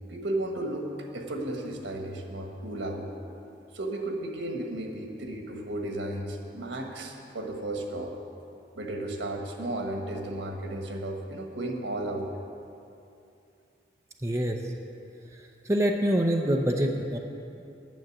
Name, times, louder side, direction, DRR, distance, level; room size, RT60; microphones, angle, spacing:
voice 1, 0.1-3.1 3.7-8.1 8.7-12.3, right 1 dB, 85° right, 2 dB, 1.4 m, -34 dB
voice 2, 14.2-14.6 15.7-17.2, equal, 15° right, 2 dB, 0.6 m, -25 dB
9.3 x 7.1 x 8.6 m, 2.7 s
head